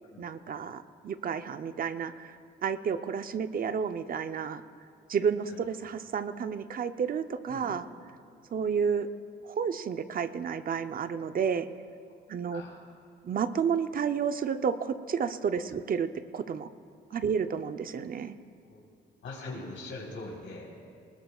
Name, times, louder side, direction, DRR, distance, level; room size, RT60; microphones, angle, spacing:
voice 1, 0.2-4.6 5.1-7.9 8.5-9.1 9.4-11.7 12.3-12.6 13.2-16.7 17.1-18.4, right 6 dB, 45° right, 10 dB, 0.6 m, -31 dB
voice 2, 12.5-12.8 15.6-15.7 17.1-17.2 18.7-18.8 19.2-20.7, left 2 dB, 75° left, -2 dB, 4.0 m, -42 dB
21.5 x 20.0 x 2.4 m, 2.2 s
cardioid pair, 90°, 20 cm